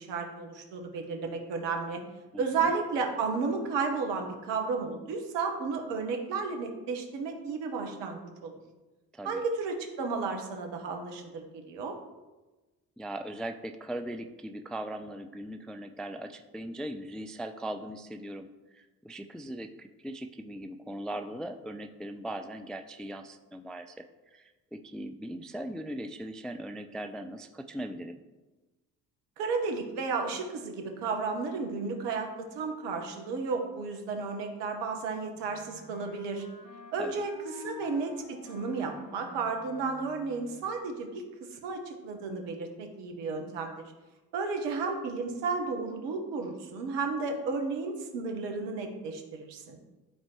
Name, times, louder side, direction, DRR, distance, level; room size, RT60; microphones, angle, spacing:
voice 1, 0.0-2.0 2.4-8.5 9.2-11.9 29.4-36.5 36.9-43.7 44.3-49.8, right 4 dB, 65° right, 4 dB, 1.3 m, -33 dB
voice 2, 2.3-2.7 9.1-9.4 13.0-18.5 18.7-28.2 37.0-37.2, right 1 dB, ahead, 8 dB, 0.3 m, -39 dB
Wind instrument woodwind instrument, 35.3-40.7, left 5 dB, 40° left, 1.5 m, -48 dB
12.5 x 4.3 x 3.0 m, 1.2 s
hypercardioid pair, 45°, 46 cm